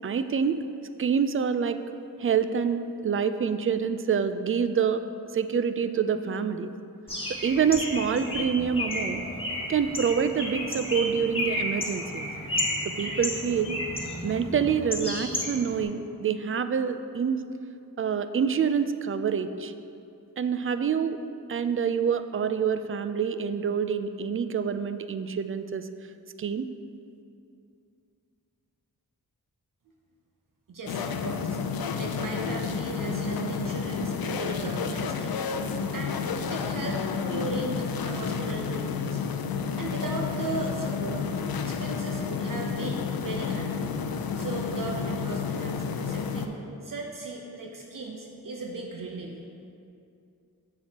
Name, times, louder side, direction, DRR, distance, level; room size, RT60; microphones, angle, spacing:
voice 1, 0.0-0.6 1.0-1.8 2.2-5.0 5.3-6.7 7.4-9.2 9.7-12.3 12.8-13.7 14.2-17.4 18.0-19.7 20.4-21.2 21.5-25.9 26.4-26.7, right 7 dB, 35° right, 11 dB, 0.4 m, -26 dB
Bird, 7.1-15.8, left 1 dB, 15° left, 1.6 m, -32 dB
voice 2, 30.7-31.6 32.0-35.4 35.9-39.2 39.8-41.2 41.6-43.7 44.3-46.6 46.8-49.3, right 2 dB, 55° right, 0 dB, 0.8 m, -37 dB
sound 1, 30.9-46.5, left 6 dB, 65° left, 0.5 m, -30 dB
7.0 x 6.8 x 2.9 m, 2.6 s
cardioid pair, 45°, 38 cm